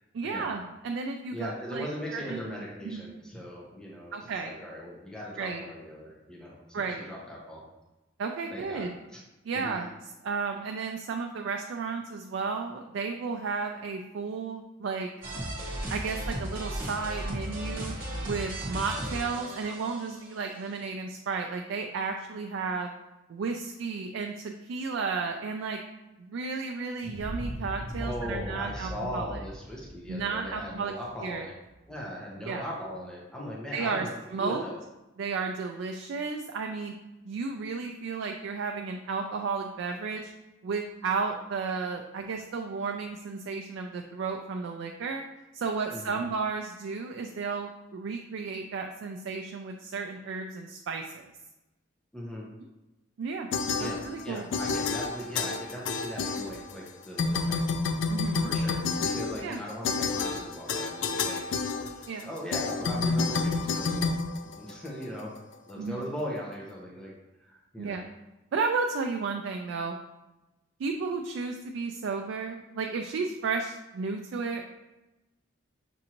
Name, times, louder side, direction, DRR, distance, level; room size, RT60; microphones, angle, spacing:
voice 1, 0.1-1.9 2.1-2.5 2.8-3.1 4.1-4.5 5.4-5.6 6.7-7.0 8.2-8.9 9.4-9.9 10.2-15.1 15.9-17.9 18.2-22.9 23.3-25.8 26.2-29.4 30.1-30.9 31.2-31.5 32.5-32.6 33.7-34.6 35.2-36.9 37.3-40.3 40.6-45.2 45.5-51.3 53.2-53.5 53.8-54.5 58.1-58.5 59.4-59.6 62.1-62.3 65.8-66.1 67.8-68.0 68.5-70.0 70.8-74.7, right 4 dB, 80° right, 3 dB, 0.3 m, -33 dB
voice 2, 1.3-7.6 8.5-8.9 9.1-9.2 9.5-9.8 28.0-31.5 31.9-34.1 34.4-34.8 45.9-46.2 52.1-52.5 53.8-57.7 58.4-61.4 61.7-65.3 65.7-67.1 67.4-68.0, equal, 5° left, -5 dB, 0.7 m, -39 dB
sound 1, 15.2-20.3, right 1 dB, 50° right, 1.1 m, -35 dB
sound 2, 27.0-31.8, equal, 40° left, 0.9 m, -39 dB
sound 3, 53.5-54.3 54.5-56.9 57.2-65.0, left 4 dB, 70° left, 0.4 m, -29 dB
6.0 x 2.6 x 2.9 m, 1.0 s
head